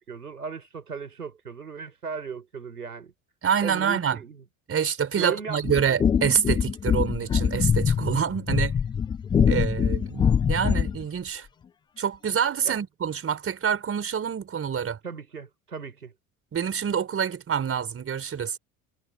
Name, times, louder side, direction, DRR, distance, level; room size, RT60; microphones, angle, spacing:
voice 1, 0.0-3.1 3.6-4.4 5.2-5.9 12.6-12.8 15.0-16.1, right 5 dB, 85° right, 4.4 m, -37 dB
voice 2, 3.4-4.2 4.7-8.8 9.5-11.5 12.0-15.0 16.5-18.6, right 7 dB, 30° right, 4.5 m, -26 dB
sound 1, 5.6-11.0, left 7 dB, 10° left, 0.3 m, -24 dB
figure-of-eight pair, 65°, 44 cm